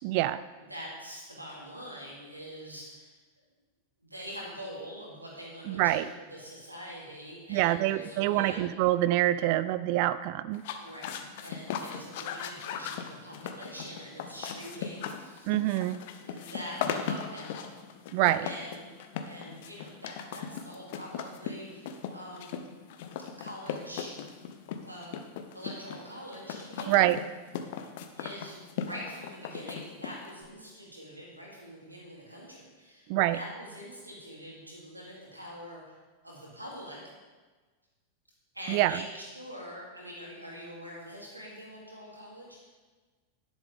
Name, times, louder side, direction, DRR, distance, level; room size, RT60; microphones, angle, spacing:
voice 1, 0.0-0.4 5.7-6.1 7.5-10.6 15.4-16.0 18.1-18.5 26.9-27.2 33.1-33.4 38.7-39.0, right 15 dB, 45° right, 15 dB, 0.3 m, -26 dB
voice 2, 0.6-3.1 4.0-8.6 10.8-15.8 16.2-17.8 18.4-18.9 19.2-22.6 23.4-24.1 24.8-25.2 25.5-27.0 27.6-27.8 28.1-35.9 36.2-37.0 38.5-42.6, equal, 85° right, -4 dB, 3.1 m, -44 dB
sound 1, 10.5-30.4, left 8 dB, 50° left, 0.8 m, -38 dB
11.0 x 10.5 x 3.7 m, 1.3 s
figure-of-eight pair, 90°, 0 cm